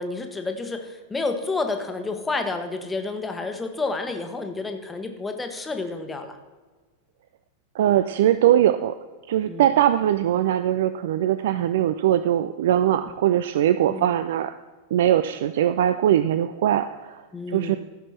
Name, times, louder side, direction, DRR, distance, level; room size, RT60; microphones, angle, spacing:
voice 1, 0.0-6.4 9.5-9.7 11.6-11.7 13.9-14.1 17.3-17.8, left 3 dB, 10° left, 6 dB, 1.1 m, -30 dB
voice 2, 7.7-9.0 9.3-14.5 14.9-17.2 17.5-17.8, right 11 dB, 55° right, 12 dB, 0.3 m, -21 dB
14.5 x 5.9 x 4.4 m, 1.3 s
figure-of-eight pair, 90°, 0 cm